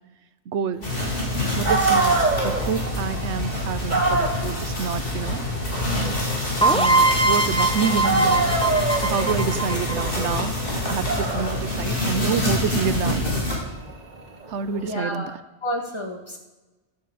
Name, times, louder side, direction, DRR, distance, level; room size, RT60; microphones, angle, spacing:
voice 1, 0.5-0.9 1.6-5.4 6.7-8.5 9.0-10.6 10.9-13.2 14.5-15.3, right 6 dB, 85° right, 13 dB, 1.2 m, -28 dB
sound 1, 0.8-13.6, left 1 dB, 55° left, 4.5 m, -26 dB
Dog, 1.3-1.4 1.6-7.7 8.0-14.8, right 3 dB, 40° right, 1.8 m, -27 dB
sound 2, 6.6-10.3, right 2 dB, 5° left, 0.9 m, -22 dB
voice 2, 14.8-16.4, equal, 25° left, 1 dB, 2.4 m, -31 dB
13.0 x 11.0 x 8.6 m, 1.1 s
omnidirectional pair, 1.1 m